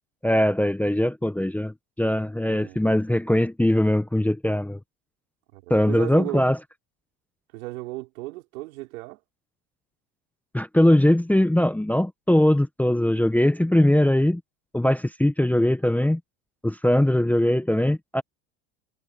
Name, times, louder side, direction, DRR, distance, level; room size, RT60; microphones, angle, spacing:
voice 1, 0.2-4.8 5.7-6.6 10.5-14.4 14.7-16.2 16.6-18.2, left 1 dB, 5° left, 0.9 m, -21 dB
voice 2, 2.5-2.9 5.5-6.4 7.5-9.2, right 20 dB, 75° right, 4.2 m, -35 dB
hypercardioid pair, 85°, 41 cm